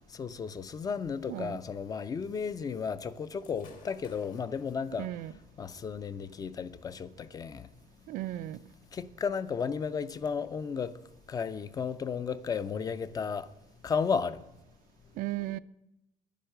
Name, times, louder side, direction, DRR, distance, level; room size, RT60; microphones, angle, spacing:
voice 1, 0.1-5.1 5.6-7.7 8.9-10.9 11.3-13.5 13.8-14.4, left 6 dB, 25° left, 0.4 m, -33 dB
Gunshot gunfire / Fireworks, 3.3-10.3, left 4 dB, 70° left, 2.5 m, -60 dB
voice 2, 5.0-5.3 8.1-8.6 15.2-15.6, right 15 dB, 75° right, 0.5 m, -35 dB
10.5 x 10.5 x 6.6 m
cardioid pair, 170°, 14 cm